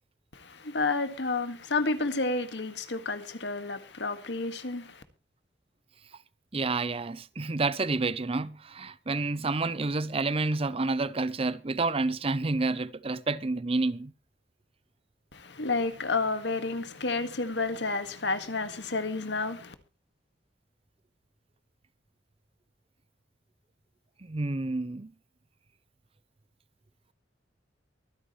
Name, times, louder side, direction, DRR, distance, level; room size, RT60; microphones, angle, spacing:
voice 1, 0.3-5.0 15.3-19.7, left 3 dB, 75° left, 1.8 m, -30 dB
voice 2, 6.5-14.1 24.2-25.1, right 3 dB, 30° right, 0.6 m, -29 dB
24.0 x 9.7 x 3.2 m
head